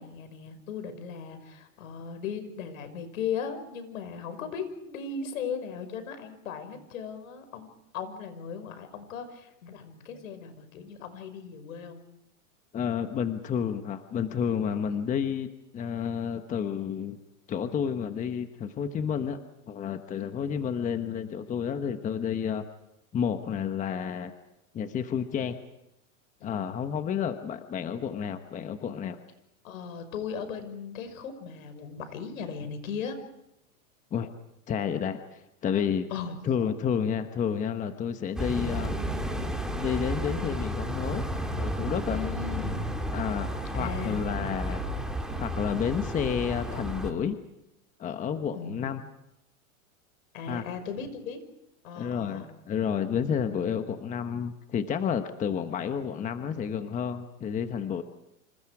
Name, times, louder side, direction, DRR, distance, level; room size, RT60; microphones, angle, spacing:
voice 1, 0.0-12.0 20.1-20.5 26.4-26.9 29.6-33.2 36.1-36.4 42.1-42.9 43.7-44.4 48.5-49.0 50.3-51.4 51.8-52.5, left 6 dB, 75° left, 9 dB, 5.8 m, -37 dB
voice 2, 12.7-17.2 17.5-19.4 19.7-22.6 23.1-24.3 24.7-25.6 26.4-29.2 34.1-34.3 34.7-36.1 36.4-38.9 39.8-41.3 41.6-42.2 43.1-44.8 45.4-47.4 48.0-49.0 50.5-50.6 51.9-58.0, left 7 dB, 20° left, 8 dB, 1.2 m, -30 dB
sound 1, 38.3-47.1, equal, ahead, 2.6 m, -32 dB
28.0 x 27.0 x 4.9 m, 0.86 s
supercardioid pair, 140°, 42 cm